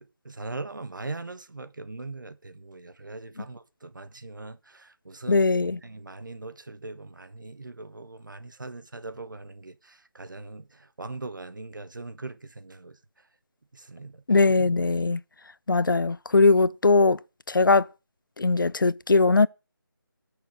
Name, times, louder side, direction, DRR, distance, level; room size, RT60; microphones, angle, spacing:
voice 1, 0.0-13.0 13.7-14.2, right 3 dB, 60° right, 1.3 m, -40 dB
voice 2, 5.3-5.8 14.3-15.2 15.7-17.2 17.5-17.9 18.4-19.5, left 3 dB, 60° left, 0.6 m, -20 dB
18.5 x 6.7 x 4.9 m
figure-of-eight pair, 175°, 12 cm